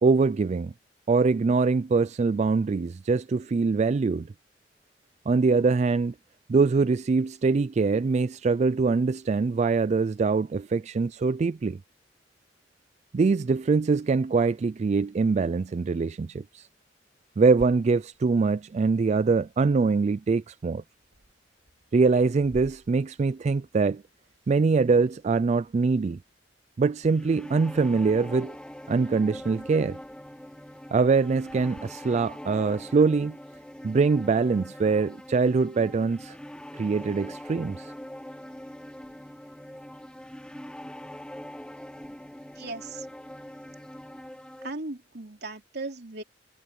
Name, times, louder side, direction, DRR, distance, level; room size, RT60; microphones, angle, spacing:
voice 1, 0.0-0.7 1.1-4.3 5.3-6.1 6.5-11.8 13.1-16.7 17.4-20.8 21.9-24.0 24.5-26.2 26.8-28.6 28.9-30.0 30.9-33.4 33.8-36.4 36.7-37.9, right 4 dB, 40° right, 0.3 m, -23 dB
sound 1, 17.6-31.8, equal, 80° right, 6.3 m, -55 dB
sound 2, 27.0-44.7, equal, 5° left, 0.6 m, -43 dB
voice 2, 42.5-43.1 44.6-46.2, right 3 dB, 65° right, 3.2 m, -37 dB
head